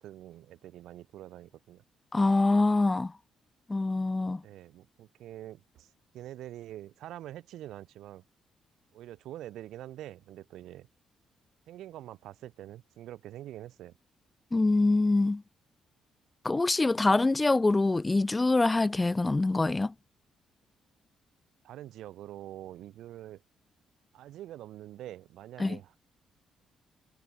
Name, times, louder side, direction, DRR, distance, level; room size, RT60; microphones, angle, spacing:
voice 1, 0.0-1.8 4.4-5.9 6.1-8.2 8.9-10.9 11.7-13.9 21.6-23.4 24.1-26.0, right 13 dB, 80° right, 4.7 m, -45 dB
voice 2, 2.1-3.1 3.7-4.4 14.5-15.4 16.4-19.9 25.6-25.8, left 2 dB, 20° left, 0.7 m, -25 dB
cardioid pair, 90°, 0 cm